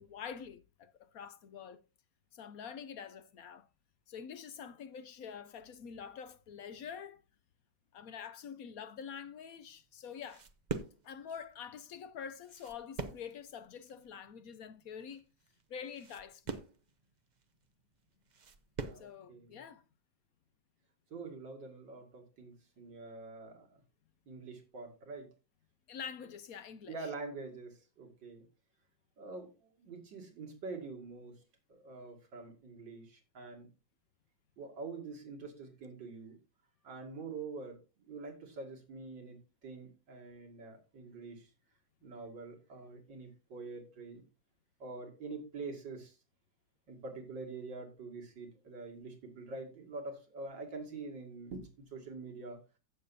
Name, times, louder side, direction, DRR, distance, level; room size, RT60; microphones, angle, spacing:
voice 1, 0.0-1.8 2.3-3.7 4.1-7.2 7.9-10.4 11.0-15.2 15.7-16.6 18.9-19.8 25.9-27.0, left 7 dB, 65° left, 1.0 m, -46 dB
sound 1, 9.6-19.2, right 4 dB, 60° right, 0.4 m, -45 dB
voice 2, 18.8-19.6 21.1-23.8 24.3-25.3 26.9-28.4 29.2-31.4 31.7-33.7 34.6-36.4 36.8-41.5 42.0-44.2 44.8-46.2 46.9-52.6, right 3 dB, 80° right, 2.9 m, -46 dB
15.5 x 6.7 x 2.7 m
omnidirectional pair, 1.9 m